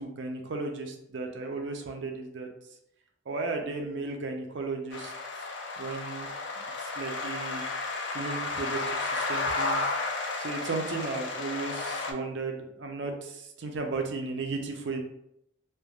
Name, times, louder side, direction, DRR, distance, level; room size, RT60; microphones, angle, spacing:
voice 1, 0.0-2.5 3.3-5.1 5.8-6.3 6.8-7.6 8.1-9.8 10.4-15.0, right 3 dB, 60° right, 3 dB, 0.4 m, -35 dB
sound 1, 4.9-12.1, left 3 dB, 60° left, 0.4 m, -32 dB
3.2 x 2.2 x 2.2 m, 0.77 s
head